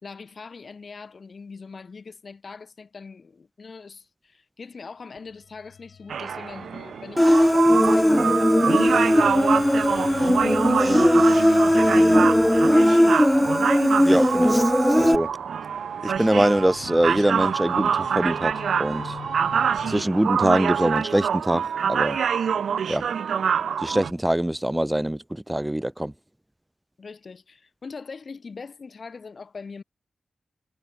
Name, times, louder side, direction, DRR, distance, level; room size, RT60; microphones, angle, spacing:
voice 1, 0.0-13.0 27.0-29.8, left 4 dB, 60° left, 2.1 m, -42 dB
sound 1, 5.2-14.3 15.2-20.0, left 7 dB, 80° left, 6.6 m, -44 dB
sound 2, 6.1-24.1, right 7 dB, 90° right, 0.6 m, -26 dB
Human voice, 7.2-15.2, left 1 dB, 10° left, 0.8 m, -18 dB
voice 2, 14.0-14.6 14.9-15.3 16.0-18.5 18.8-19.2 19.9-22.2 22.9-23.1 23.8-26.1, right 1 dB, 10° right, 1.6 m, -23 dB
cardioid pair, 50°, 0 cm